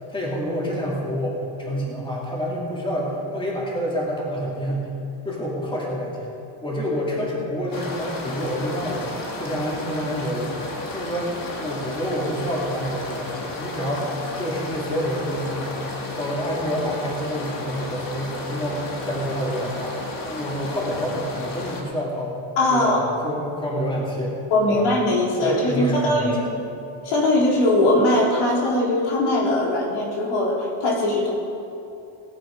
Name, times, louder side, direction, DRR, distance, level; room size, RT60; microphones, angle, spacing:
voice 1, 0.1-4.9 5.2-6.3 6.6-10.6 10.9-11.3 11.6-15.9 16.2-20.0 20.3-22.4 22.7-24.4 24.7-24.9 25.4-26.4, equal, 10° left, -4 dB, 2.4 m, -28 dB
sound 1, 7.7-21.8, left 2 dB, 40° left, 1.9 m, -33 dB
voice 2, 22.6-23.0 24.5-26.5 27.0-31.3, left 1 dB, 80° left, -3 dB, 3.5 m, -20 dB
19.0 x 8.6 x 5.0 m, 2.8 s
cardioid pair, 165°, 49 cm